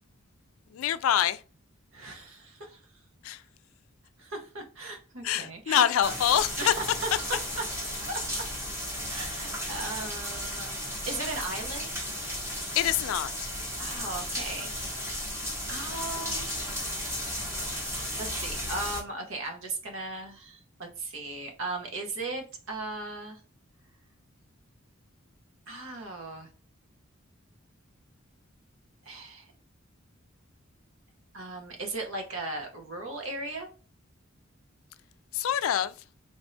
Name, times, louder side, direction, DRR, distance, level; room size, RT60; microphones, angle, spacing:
voice 1, 0.7-1.4 3.2-3.4 5.2-6.7 12.8-13.3 35.3-35.9, left 10 dB, 80° left, 0.3 m, -25 dB
voice 2, 1.9-2.8 4.2-6.2 6.6-7.7 8.0-8.5 9.1-10.7 11.1-11.9 13.8-15.3 15.7-16.7 18.2-23.4 25.7-26.5 29.0-29.5 31.3-33.7, right 2 dB, 70° right, 1.0 m, -37 dB
sound 1, 6.0-19.0, equal, 15° right, 1.2 m, -34 dB
3.5 x 3.2 x 2.7 m
head